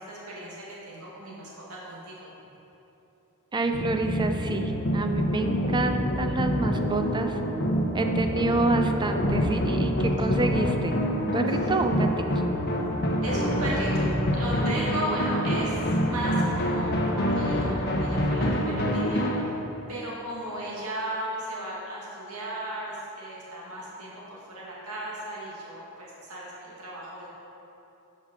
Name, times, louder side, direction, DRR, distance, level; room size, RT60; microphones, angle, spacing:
voice 1, 0.0-2.3 13.2-19.5 19.9-27.3, right 1 dB, 90° right, -5 dB, 1.8 m, -36 dB
voice 2, 3.5-7.4 7.9-12.1 12.3-12.4, right 2 dB, 20° right, 5 dB, 0.5 m, -28 dB
sound 1, 3.7-19.4, equal, 45° left, 1.0 m, -26 dB
11.5 x 5.3 x 5.2 m, 3.0 s
head